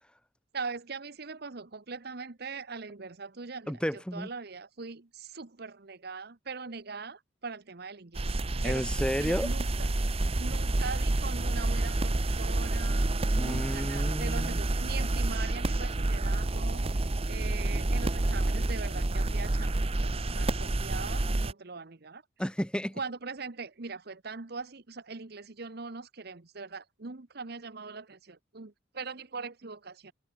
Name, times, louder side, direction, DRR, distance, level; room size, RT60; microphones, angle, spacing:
voice 1, 0.5-3.8 4.1-8.3 8.6-8.9 9.2-9.9 10.4-22.2 23.0-30.1, right 4 dB, 60° right, 1.1 m, -41 dB
voice 2, 3.7-4.3 8.6-9.5 13.4-14.6 22.4-23.0, equal, 5° left, 3.3 m, -32 dB
sound 1, 8.1-21.5, right 2 dB, 35° right, 0.8 m, -29 dB
head